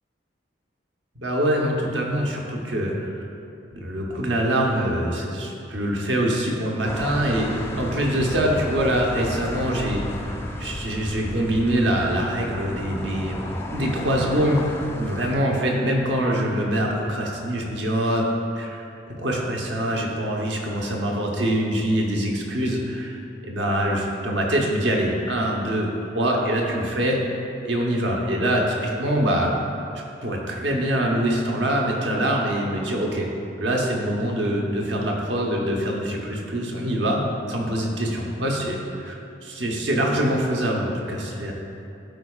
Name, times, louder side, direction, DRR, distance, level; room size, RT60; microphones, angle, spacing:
voice 1, 1.2-3.2 3.7-7.5 7.8-14.7 15.0-18.3 18.6-18.8 19.2-25.9 26.1-27.2 27.6-29.5 30.2-33.3 33.6-37.2 37.5-41.5, right 1 dB, 70° right, -1 dB, 0.9 m, -24 dB
sound 1, 6.9-15.4, left 1 dB, 15° left, 0.3 m, -33 dB
12.5 x 4.6 x 2.4 m, 2.6 s
head